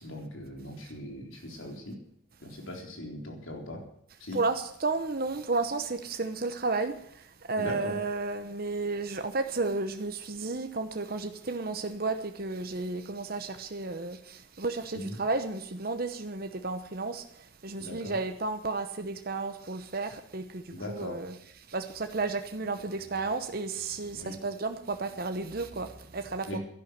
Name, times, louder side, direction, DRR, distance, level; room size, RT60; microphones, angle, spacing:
voice 1, 0.0-2.0 2.4-3.8 4.2-4.4 7.6-8.0 14.9-15.2 17.8-18.2 20.7-21.2 24.1-24.4 26.5-26.6, left 1 dB, 75° left, 3.9 m, -39 dB
voice 2, 4.3-7.0 7.4-17.2 17.6-21.3 21.7-26.6, right 3 dB, 45° right, 0.9 m, -32 dB
11.5 x 11.5 x 8.1 m
head